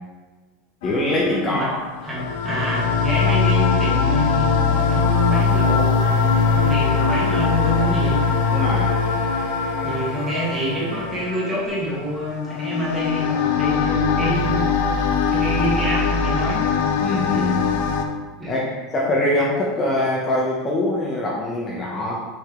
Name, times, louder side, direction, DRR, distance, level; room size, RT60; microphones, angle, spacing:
sound 1, 0.8-18.1, left 5 dB, 75° left, 0.7 m, -21 dB
voice 1, 0.8-1.7 8.5-9.0 17.0-17.7 18.5-18.7 18.9-22.2, left 1 dB, 20° left, -4 dB, 1.0 m, -23 dB
voice 2, 2.0-8.2 9.8-14.6 15.3-16.6 18.4-18.7, equal, 15° right, -6 dB, 2.1 m, -26 dB
sound 2, 6.0-11.7, right 4 dB, 75° right, 0.9 m, -37 dB
6.1 x 5.3 x 3.8 m, 1.3 s
supercardioid pair, 155°, 0 cm